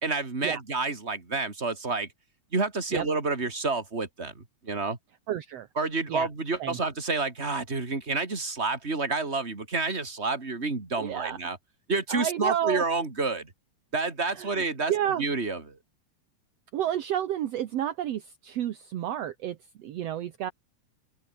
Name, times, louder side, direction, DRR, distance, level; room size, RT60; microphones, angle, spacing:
voice 1, 0.0-2.1 2.5-5.0 5.8-11.6 11.9-13.5 13.9-14.9 15.2-15.8, right 3 dB, 20° right, 3.7 m, -29 dB
voice 2, 5.3-5.7 6.1-6.3 6.6-6.8 11.0-11.4 12.1-12.8 14.3-14.5 14.9-15.2 16.7-20.5, right 11 dB, 65° right, 2.1 m, -30 dB
open air
omnidirectional pair, 3.3 m